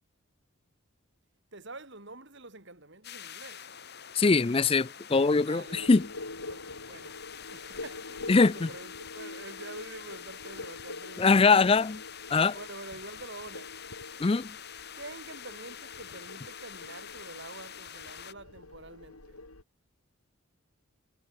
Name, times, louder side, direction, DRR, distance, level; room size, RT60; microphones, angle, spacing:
voice 1, 1.5-3.7 5.4-6.0 6.5-7.2 7.5-11.6 12.5-13.8 14.9-19.4, right 2 dB, 55° right, 4.1 m, -46 dB
sound 1, 3.0-18.3, left 8 dB, 50° left, 5.8 m, -46 dB
voice 2, 4.1-6.1 8.3-8.7 11.2-12.0 12.3-12.5 14.2-14.5, left 4 dB, 25° left, 0.4 m, -22 dB
sound 2, 5.7-19.6, left 2 dB, 85° left, 3.8 m, -46 dB
head